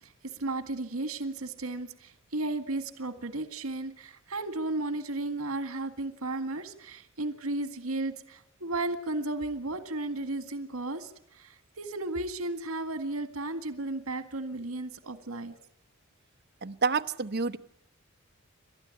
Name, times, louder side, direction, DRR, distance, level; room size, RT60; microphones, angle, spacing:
voice 1, 0.0-15.5, right 2 dB, 85° right, 9 dB, 2.0 m, -34 dB
voice 2, 16.6-17.6, right 4 dB, 50° right, 9 dB, 1.0 m, -28 dB
29.0 x 12.5 x 9.7 m, 0.73 s
head